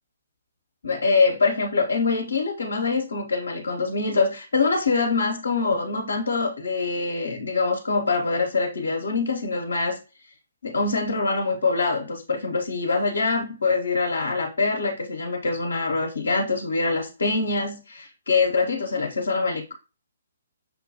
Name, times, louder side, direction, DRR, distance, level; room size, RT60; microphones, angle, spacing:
voice 1, 0.8-10.0 10.6-19.7, left 4 dB, 70° left, 0.8 m, -24 dB
5.8 x 2.2 x 2.7 m
figure-of-eight pair, 130°, 0 cm